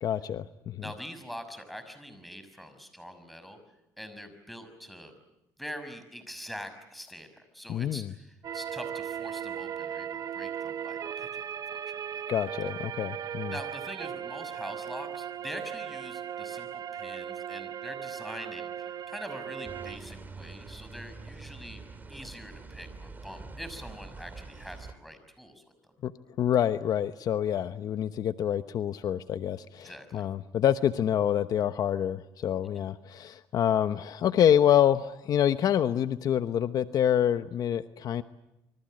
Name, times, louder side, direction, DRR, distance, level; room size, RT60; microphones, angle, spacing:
voice 1, 0.0-0.8 7.7-8.0 12.3-13.5 26.0-26.1 26.4-38.2, left 10 dB, 55° left, 11 dB, 1.0 m, -26 dB
voice 2, 0.8-3.6 4.0-5.1 5.6-12.2 13.5-21.8 22.1-25.6 29.8-30.3, equal, ahead, 9 dB, 6.0 m, -44 dB
sound 1, 8.4-20.0, right 9 dB, 50° right, 1.2 m, -37 dB
sound 2, 19.6-24.9, right 4 dB, 25° right, 3.4 m, -45 dB
27.0 x 25.0 x 7.7 m, 0.89 s
cardioid pair, 95°, 8 cm